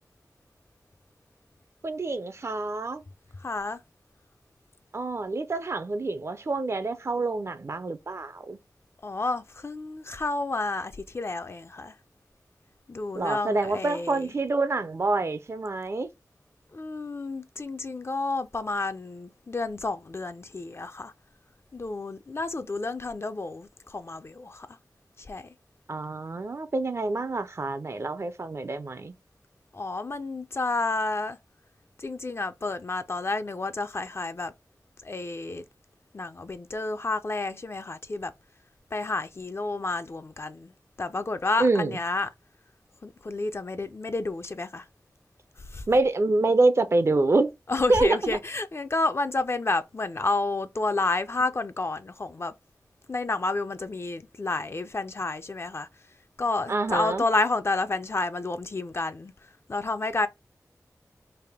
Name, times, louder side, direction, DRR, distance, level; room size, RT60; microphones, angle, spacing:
voice 1, 1.8-3.0 4.9-8.6 13.1-16.1 25.9-29.1 41.6-42.0 45.9-47.5 47.9-48.4 56.7-57.2, right 2 dB, 45° right, 0.5 m, -26 dB
voice 2, 3.4-3.8 9.0-11.9 12.9-14.3 16.7-21.1 21.7-24.8 25.2-25.5 29.7-31.4 32.0-34.5 35.0-35.6 36.1-38.3 38.9-42.3 43.0-44.9 45.7-45.8 47.7-52.5 53.1-55.9 56.4-59.3 59.7-60.3, left 3 dB, 45° left, 0.4 m, -30 dB
3.4 x 2.5 x 3.5 m
wide cardioid pair, 85°, 6 cm